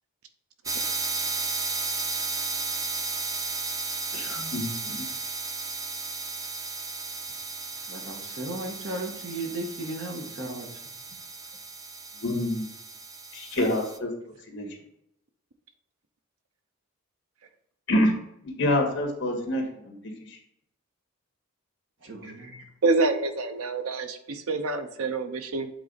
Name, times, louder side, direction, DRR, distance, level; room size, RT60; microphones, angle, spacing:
sound 1, 0.7-14.0, right 4 dB, 15° right, 0.3 m, -34 dB
voice 1, 4.1-5.0 12.2-12.7 13.3-14.1 14.5-14.7 17.9-18.1 18.4-20.0 20.3-20.4, left 1 dB, 50° left, 1 dB, 1.8 m, -27 dB
voice 2, 7.8-10.7 22.0-22.7, right 2 dB, 55° right, 1 dB, 1.4 m, -35 dB
voice 3, 22.8-25.7, right 3 dB, 85° right, 8 dB, 0.7 m, -27 dB
8.1 x 4.0 x 4.0 m, 0.76 s
head